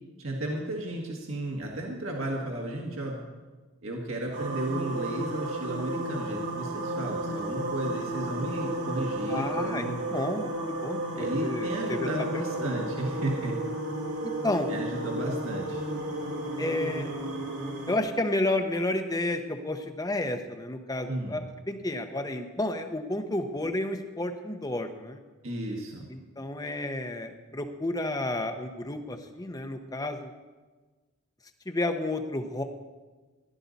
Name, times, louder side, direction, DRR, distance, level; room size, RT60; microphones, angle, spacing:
voice 1, 0.2-3.2 3.8-10.0 11.2-13.6 14.7-15.8 21.1-21.4 25.4-26.1, right 1 dB, 65° right, -1 dB, 1.8 m, -33 dB
sound 1, 4.3-18.0, right 1 dB, 90° right, 2.2 m, -33 dB
voice 2, 9.3-9.8 10.1-12.1 12.3-12.7 14.2-14.7 16.6-17.1 17.9-25.2 26.1-30.3 31.7-32.6, left 1 dB, 15° left, 7 dB, 0.9 m, -31 dB
16.0 x 12.0 x 4.1 m, 1.3 s
head